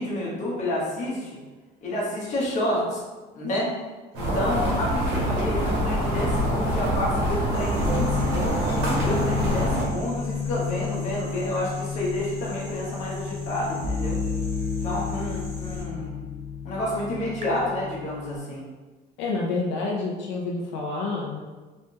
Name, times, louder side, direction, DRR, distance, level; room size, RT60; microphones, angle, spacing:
voice 1, 0.0-1.4 1.8-3.0 3.3-3.7 4.1-8.7 9.0-14.2 14.8-16.2 16.6-18.7, left 1 dB, 40° left, -5 dB, 1.1 m, -29 dB
sound 1, 4.1-9.8, equal, 80° right, 1.4 m, -25 dB
sound 2, 7.5-15.8, right 1 dB, 15° left, 1.4 m, -42 dB
sound 3, 7.9-18.4, left 5 dB, 40° right, 0.5 m, -31 dB
voice 2, 19.2-21.4, left 3 dB, 85° left, -2 dB, 0.6 m, -28 dB
3.4 x 3.2 x 2.8 m, 1.3 s
cardioid pair, 175°, 18 cm